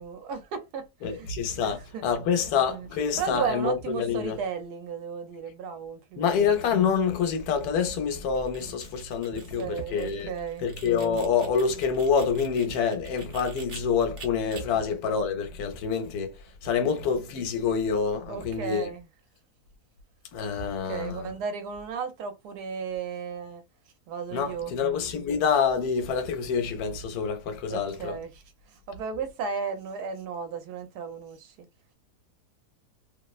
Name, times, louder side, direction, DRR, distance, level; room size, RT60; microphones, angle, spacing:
voice 1, 0.0-1.3 1.6-2.1 2.7-2.9 3.2-6.4 9.3-10.7 14.7-14.8 16.8-16.9 17.6-17.7 18.3-19.1 20.6-23.6 24.1-24.7 27.7-28.4 28.7-31.7, right 6 dB, 85° right, 1.3 m, -35 dB
voice 2, 1.0-4.4 6.2-10.3 10.6-18.9 20.3-21.3 24.3-28.2, left 6 dB, 75° left, 1.1 m, -27 dB
sound 1, 8.3-13.8 14.2-14.6, right 5 dB, 50° right, 0.8 m, -47 dB
3.0 x 2.0 x 2.3 m
omnidirectional pair, 1.7 m